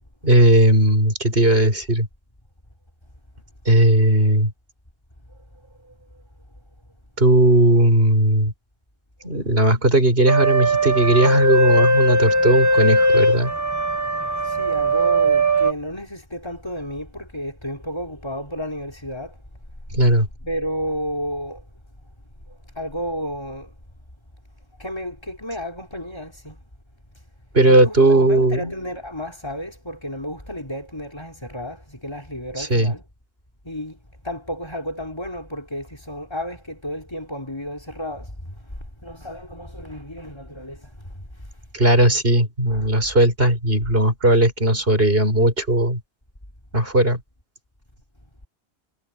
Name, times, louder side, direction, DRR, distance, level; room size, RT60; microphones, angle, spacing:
voice 1, 0.2-2.1 3.7-4.5 7.2-8.5 9.2-13.5 19.9-20.3 27.5-28.7 32.6-32.9 41.7-46.0 46.7-47.2, right 1 dB, 60° right, 6.2 m, -17 dB
voice 2, 5.7-6.2 14.4-19.4 20.4-21.6 22.5-23.7 24.8-26.6 27.6-33.0 33.6-34.0 34.2-41.6 42.7-42.9, equal, 25° left, 4.1 m, -32 dB
sound 1, 10.3-15.7, right 1 dB, 15° right, 1.1 m, -19 dB
omnidirectional pair, 1.1 m